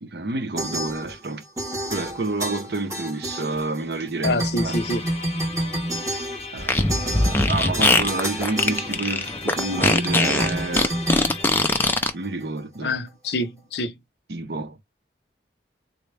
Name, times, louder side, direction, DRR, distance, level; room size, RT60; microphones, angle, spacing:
voice 1, 0.0-1.4 1.9-4.8 6.5-10.9 12.1-13.0 14.3-14.8, right 3 dB, 65° right, 0.7 m, -29 dB
sound 1, 0.6-1.3 1.6-3.9 4.2-12.1, right 1 dB, 20° right, 1.0 m, -29 dB
voice 2, 4.2-5.0 12.8-13.9, left 2 dB, 70° left, 0.7 m, -26 dB
sound 2, 4.7-12.0, left 3 dB, 35° left, 0.8 m, -37 dB
Fart, 6.6-12.1, left 2 dB, 10° left, 0.4 m, -21 dB
3.8 x 2.1 x 3.2 m
head